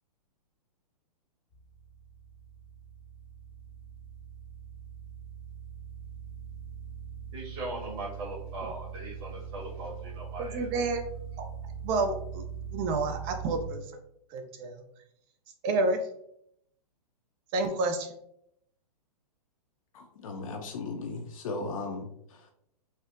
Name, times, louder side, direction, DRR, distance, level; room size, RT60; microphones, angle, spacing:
sound 1, 1.5-13.7, right 6 dB, 25° left, 0.8 m, -42 dB
voice 1, 7.3-10.7, right 2 dB, 40° right, -4 dB, 1.5 m, -39 dB
voice 2, 10.4-11.0 11.8-12.4 12.7-13.8 14.3-14.8 15.6-16.0 17.5-18.1, right 3 dB, 25° right, 6 dB, 0.3 m, -29 dB
voice 3, 19.9-22.5, left 3 dB, 55° left, 2 dB, 0.5 m, -37 dB
4.2 x 2.0 x 2.5 m, 0.73 s
hypercardioid pair, 140°, 20 cm